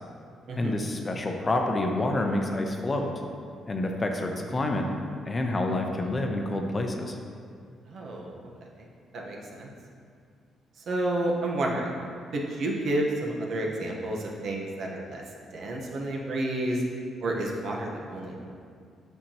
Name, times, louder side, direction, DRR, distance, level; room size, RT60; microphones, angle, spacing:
voice 1, 0.6-3.1 3.7-4.9 5.3-7.2, left 2 dB, 30° left, 3 dB, 0.7 m, -28 dB
voice 2, 7.9-8.3 8.8-8.9 9.1-9.7 10.8-11.9 12.3-15.2 15.5-16.8 17.2-18.5, right 1 dB, 65° right, -1 dB, 1.0 m, -30 dB
7.6 x 5.7 x 2.9 m, 2.2 s
cardioid pair, 90°, 0 cm